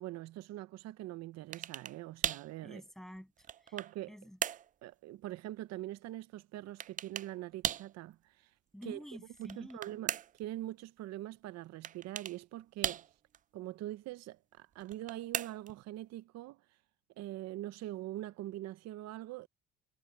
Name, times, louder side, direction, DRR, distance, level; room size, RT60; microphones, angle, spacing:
voice 1, 0.0-2.8 3.7-4.2 4.8-8.5 8.8-9.0 9.4-13.0 13.5-16.6 17.2-19.5, right 15 dB, 60° right, 0.8 m, -43 dB
sound 1, 1.5-2.5 3.2-4.0 4.4-4.7 6.8-7.3 7.6-7.9 9.3-10.4 11.8-12.4 12.8-13.4 14.8-15.8, right 10 dB, 25° right, 0.4 m, -37 dB
voice 2, 2.6-3.8 4.1-4.4 8.7-10.0, equal, ahead, 7.9 m, -49 dB
cardioid pair, 110°, 30 cm